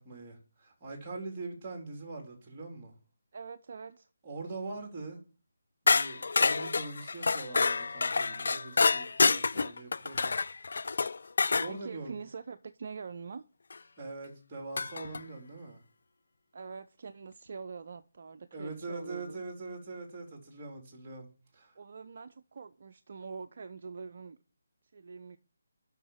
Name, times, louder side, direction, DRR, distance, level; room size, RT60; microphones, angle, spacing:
voice 1, 0.0-2.9 4.2-5.2 5.8-10.4 11.6-12.2 14.0-15.8 18.5-21.3 21.5-21.7, right 3 dB, 20° right, 3.8 m, -42 dB
voice 2, 3.3-4.1 11.7-13.4 16.5-19.4 21.7-24.4 24.9-25.4, right 5 dB, 50° right, 0.6 m, -44 dB
sound 1, 5.9-11.7 13.7-13.8 14.8-15.2, left 4 dB, 65° left, 0.5 m, -28 dB
8.2 x 6.4 x 7.3 m
figure-of-eight pair, 155°, 0 cm